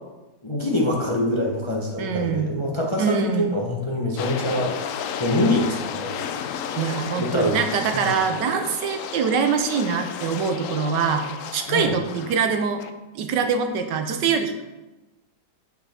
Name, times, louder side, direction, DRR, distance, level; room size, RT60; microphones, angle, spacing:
voice 1, 0.4-4.7 5.2-6.1 7.2-7.6 7.9-8.0 11.7-11.9, left 1 dB, 20° left, -2 dB, 0.9 m, -24 dB
voice 2, 2.0-2.5 3.0-3.5 6.7-11.2 11.5-12.8 13.1-14.6, right 6 dB, 85° right, 7 dB, 1.4 m, -24 dB
sound 1, 4.2-12.4 12.8-12.9, left 8 dB, 70° left, 0.7 m, -32 dB
8.3 x 6.0 x 4.3 m, 1.1 s
omnidirectional pair, 1.8 m